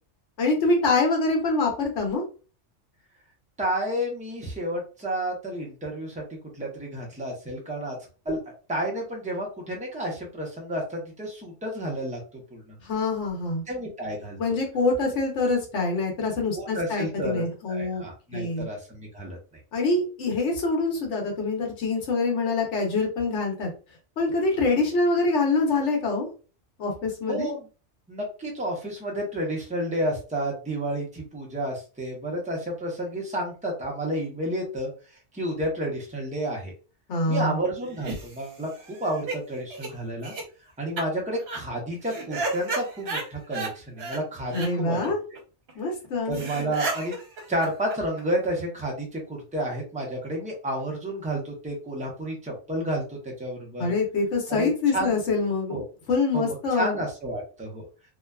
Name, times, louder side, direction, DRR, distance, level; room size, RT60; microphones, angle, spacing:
voice 1, 0.4-2.2 12.8-13.6 14.4-18.0 18.3-18.7 19.7-23.7 24.2-26.3 26.8-27.5 37.1-37.6 44.5-45.2 45.8-46.4 53.8-55.8 56.1-57.0, left 3 dB, 85° left, 1 dB, 1.2 m, -25 dB
voice 2, 3.6-6.2 6.5-8.0 8.2-8.4 8.7-12.2 12.5-12.7 13.7-14.4 16.5-19.4 27.3-27.7 28.1-34.9 35.3-36.7 37.3-40.3 40.8-45.1 46.2-47.2 47.5-53.9 54.5-55.1 55.7-55.8 56.3-57.9, right 1 dB, 10° right, -2 dB, 0.6 m, -31 dB
sound 1, 37.8-39.4 39.7-39.9 40.2-40.4 41.0-41.1 41.4-41.6 42.0-43.7 44.0-44.2 44.5-44.7 45.0-45.1 45.4-45.5 45.7-45.8 46.0-46.1 46.3-48.5, right 3 dB, 65° right, 1.1 m, -33 dB
2.7 x 2.3 x 2.2 m, 0.35 s
omnidirectional pair, 1.2 m